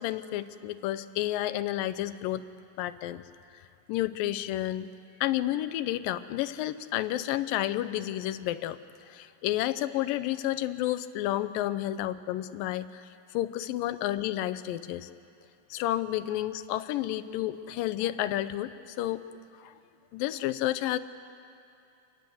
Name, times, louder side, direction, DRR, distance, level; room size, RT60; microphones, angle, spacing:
voice 1, 0.0-2.4 2.8-3.2 3.5-3.6 3.9-4.9 5.2-8.8 9.1-13.1 13.3-15.1 15.7-19.2 19.6-19.8 20.1-21.0, left 14 dB, 85° left, 14 dB, 2.4 m, -31 dB
26.5 x 20.0 x 7.8 m, 2.6 s
omnidirectional pair, 3.9 m